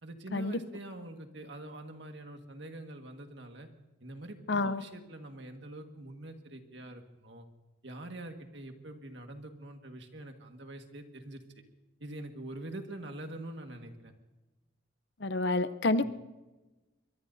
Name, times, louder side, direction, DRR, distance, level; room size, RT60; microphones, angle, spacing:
voice 1, 0.0-3.7 4.0-7.5 7.8-11.4 12.0-14.1 16.0-16.1, right 1 dB, 60° right, 4 dB, 1.7 m, -45 dB
voice 2, 4.5-4.8 15.2-16.1, left 2 dB, 60° left, 12 dB, 0.7 m, -28 dB
23.5 x 22.5 x 2.7 m, 1.1 s
head